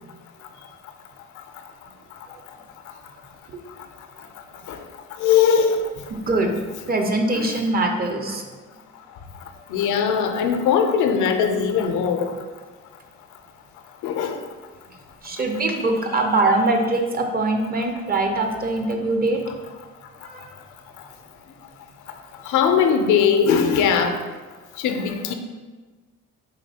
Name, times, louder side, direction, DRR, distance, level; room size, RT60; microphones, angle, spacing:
voice 1, 5.2-5.9 7.3-7.5 9.7-12.3 14.0-14.4 22.5-24.2 24.8-25.3, left 7 dB, 80° left, 6 dB, 0.5 m, -20 dB
voice 2, 6.3-6.6 6.9-8.5 15.2-19.4 20.2-20.5, right 2 dB, 30° right, 4 dB, 0.5 m, -22 dB
4.1 x 3.0 x 2.7 m, 1.3 s
cardioid pair, 90°, 30 cm